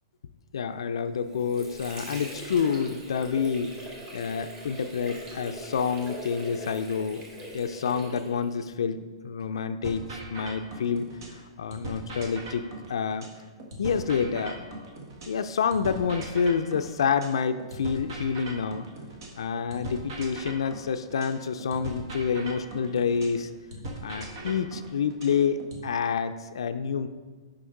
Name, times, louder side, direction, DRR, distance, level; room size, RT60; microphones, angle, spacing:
voice 1, 0.5-3.8 4.1-7.2 7.5-13.3 13.8-14.7 15.3-18.9 19.4-23.5 24.0-27.1, left 6 dB, 85° left, 9 dB, 0.4 m, -28 dB
Water / Sink (filling or washing), 1.0-8.7, right 1 dB, 25° right, 2.1 m, -41 dB
sound 1, 9.8-11.4 11.7-15.4 15.7-19.4 19.7-23.4 23.7-25.8, right 1 dB, 60° right, 1.6 m, -40 dB
6.3 x 5.9 x 4.6 m, 1.4 s
hypercardioid pair, 140°, 3 cm